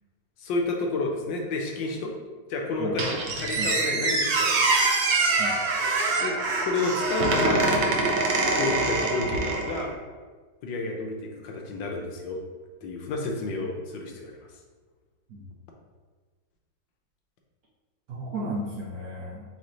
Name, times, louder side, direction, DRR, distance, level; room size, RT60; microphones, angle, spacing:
voice 1, 0.4-2.1 2.5-4.7 6.2-7.7 8.5-9.9 10.6-12.4 12.8-14.3, left 3 dB, 75° left, 1 dB, 1.3 m, -30 dB
Squeak, 3.0-9.9, right 3 dB, 80° right, 0.6 m, -24 dB
voice 2, 18.1-19.4, right 1 dB, 60° right, -5 dB, 1.0 m, -34 dB
4.3 x 3.2 x 3.8 m, 1.4 s
omnidirectional pair, 2.1 m